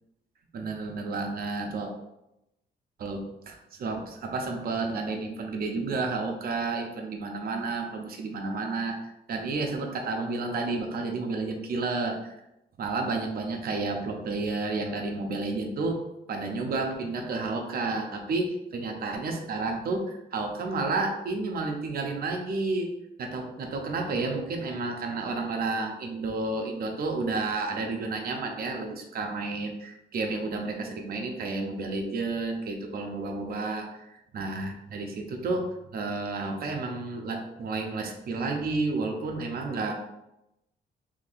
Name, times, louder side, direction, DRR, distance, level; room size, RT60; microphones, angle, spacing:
voice 1, 0.5-1.9 3.0-12.4 12.8-16.0 16.3-22.9 23.2-34.1 34.3-39.9, right 3 dB, 55° right, 3 dB, 0.7 m, -31 dB
2.8 x 2.6 x 4.0 m, 0.88 s
cardioid pair, 135°, 19 cm